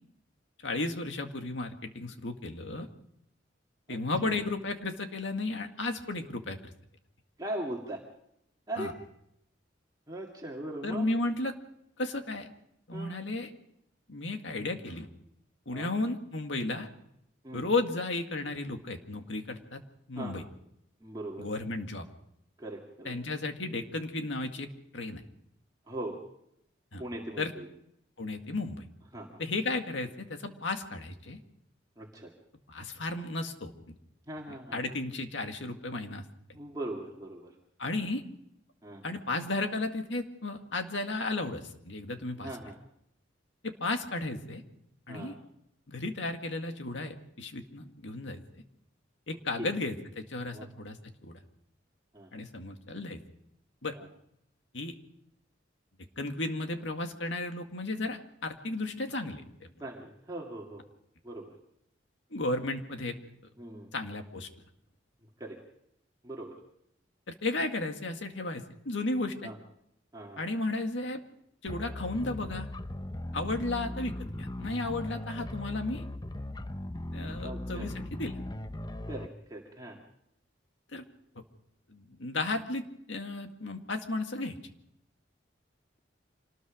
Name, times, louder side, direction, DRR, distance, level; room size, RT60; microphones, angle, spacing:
voice 1, 0.6-2.9 3.9-6.7 8.8-8.9 10.8-11.5 12.0-12.5 12.9-13.5 14.1-15.1 15.7-16.9 17.5-19.8 20.1-20.4 21.4-22.1 23.0-24.7 24.9-25.2 26.9-27.0 27.4-27.5 28.2-28.8 29.4-31.4 32.7-34.0 34.7-36.2 37.8-38.2 39.0-42.5 43.6-44.6 45.1-45.3 45.9-48.4 49.3-51.0 51.2-51.4 52.3-53.2 53.8-53.9 54.7-54.9 56.2-59.7 62.3-63.2 63.9-64.5 67.3-69.5 70.4-71.2 71.6-72.7 73.3-76.0 77.1-78.4 80.9-81.0 81.9-84.6, left 2 dB, 80° left, 5 dB, 2.0 m, -34 dB
voice 2, 3.9-4.3 7.4-8.0 8.7-8.9 10.1-11.1 12.9-13.2 15.7-15.9 17.4-17.7 20.2-20.4 21.0-21.5 22.6-23.1 25.9-26.2 27.0-27.7 29.1-29.4 32.0-32.3 34.3-34.8 36.5-37.5 38.8-39.0 42.4-42.8 45.1-45.3 49.6-49.7 50.5-50.7 52.1-52.3 53.9-54.1 59.8-60.8 61.2-61.5 63.6-63.9 65.4-65.6 66.2-66.6 69.4-69.6 70.1-70.4 77.4-77.9 79.1-80.0, right 1 dB, 20° right, -2 dB, 2.1 m, -40 dB
sound 1, 71.7-79.3, left 1 dB, 20° left, 0.7 m, -38 dB
26.0 x 19.5 x 5.1 m, 0.78 s
head